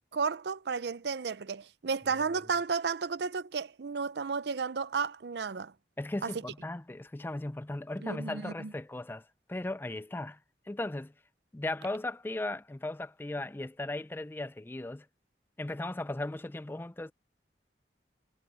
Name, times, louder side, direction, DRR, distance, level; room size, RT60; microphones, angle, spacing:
voice 1, 0.1-5.7 6.2-6.3 8.0-8.7, right 5 dB, 65° right, 0.5 m, -33 dB
voice 2, 6.0-10.4 10.7-11.1 11.5-15.1 15.6-17.1, left 2 dB, 10° left, 0.4 m, -37 dB
head